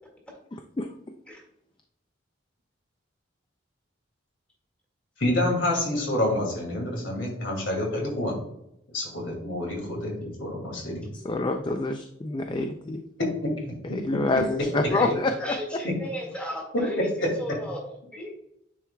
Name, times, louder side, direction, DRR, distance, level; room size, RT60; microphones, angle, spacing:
voice 1, 0.5-0.9 11.1-13.0 13.9-15.8, left 2 dB, 25° left, 5 dB, 0.3 m, -27 dB
voice 2, 5.2-8.4 8.9-11.0 13.2-13.8 16.7-17.3, left 1 dB, 70° left, 0 dB, 2.4 m, -27 dB
voice 3, 14.9-17.1 17.4-17.8 18.1-18.3, equal, 5° left, -1 dB, 1.8 m, -34 dB
9.5 x 4.6 x 2.2 m, 0.81 s
head